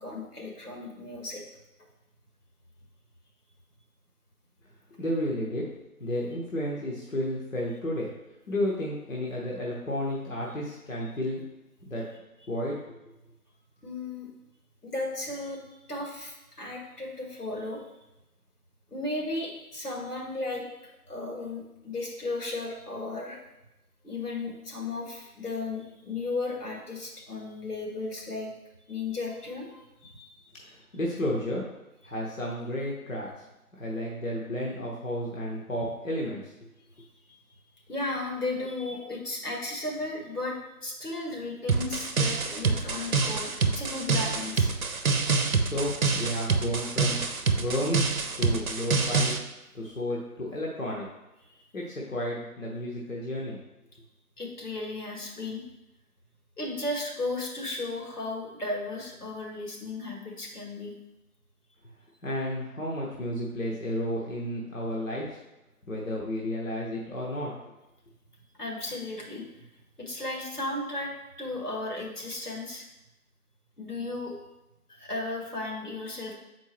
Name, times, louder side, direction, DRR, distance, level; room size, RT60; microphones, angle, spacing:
voice 1, 0.0-1.4 13.8-14.3 14.8-15.6 15.9-17.8 18.9-23.4 24.0-28.5 28.9-30.3 36.9-37.4 37.9-44.7 54.4-55.6 56.6-60.9 68.6-69.5 70.0-71.1 71.4-72.9 73.8-74.4 74.9-76.3, left 2 dB, 80° left, -1 dB, 1.9 m, -35 dB
voice 2, 5.0-5.6 6.0-8.1 8.5-11.4 11.9-12.0 12.5-12.8 30.6-31.6 32.0-33.4 33.7-36.5 45.6-47.2 47.6-49.4 49.7-51.1 51.7-53.6 62.2-65.4 65.9-67.5, left 1 dB, 60° left, -4 dB, 1.1 m, -32 dB
sound 1, 41.7-49.4, right 4 dB, 65° right, 0.7 m, -26 dB
6.6 x 4.5 x 3.2 m, 0.97 s
figure-of-eight pair, 170°, 45 cm